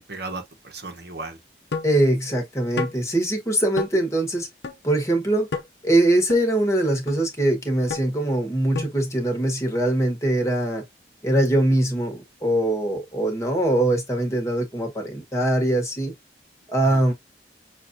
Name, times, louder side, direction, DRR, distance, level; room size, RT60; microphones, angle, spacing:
voice 1, 0.0-1.4 16.8-17.1, right 3 dB, 65° right, 1.1 m, -36 dB
sound 1, 1.7-2.0 2.8-3.0 3.8-3.9 4.6-4.8 5.5-5.7 6.3-6.4 7.1-7.2 7.9-8.0 8.8-9.0, left 4 dB, 80° left, 0.6 m, -29 dB
voice 2, 1.8-4.5 4.8-5.5 5.8-10.8 11.2-16.1 16.7-17.1, right 1 dB, 15° left, 1.3 m, -22 dB
6.1 x 2.6 x 2.6 m
head